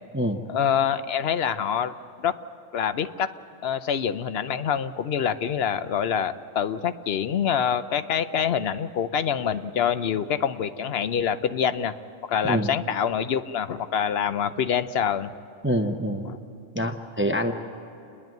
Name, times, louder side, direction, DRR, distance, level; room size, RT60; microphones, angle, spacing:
voice 1, 0.5-2.3 2.7-3.3 3.6-12.0 12.3-15.3 16.3-16.4, left 8 dB, 60° left, 12 dB, 0.8 m, -26 dB
voice 2, 15.6-16.3 16.7-17.5, equal, 10° right, 6 dB, 0.6 m, -25 dB
29.0 x 10.5 x 9.2 m, 2.8 s
omnidirectional pair, 1.3 m